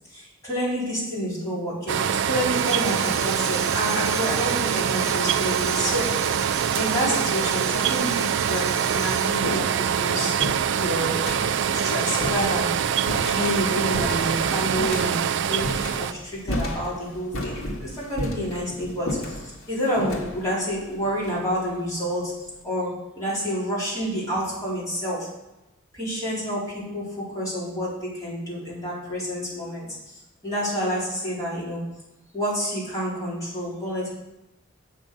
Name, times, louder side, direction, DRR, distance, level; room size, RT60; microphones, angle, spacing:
voice 1, 0.1-6.5 6.7-10.5 10.8-11.4 11.7-13.0 13.3-25.3 25.9-31.9 32.3-34.1, equal, 15° left, -8 dB, 4.2 m, -29 dB
sound 1, 1.9-16.1, right 8 dB, 60° right, 0.3 m, -24 dB
Tambourine, 2.5-9.6, right 4 dB, 15° right, 0.8 m, -36 dB
sound 2, 6.0-6.1 7.0-7.1 8.0-8.1 8.4-22.0, left 1 dB, 80° left, 1.7 m, -34 dB
7.9 x 6.4 x 6.6 m, 0.92 s
head